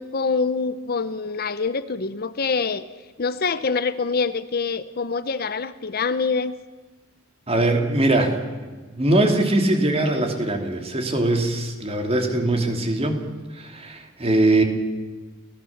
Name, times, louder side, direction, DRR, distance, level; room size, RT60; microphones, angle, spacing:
voice 1, 0.0-2.9 3.2-6.5, left 4 dB, 50° left, 13 dB, 0.8 m, -25 dB
voice 2, 7.5-8.3 8.9-13.2 13.5-14.6, right 2 dB, 30° right, 4 dB, 2.8 m, -21 dB
29.5 x 17.0 x 7.3 m, 1.4 s
head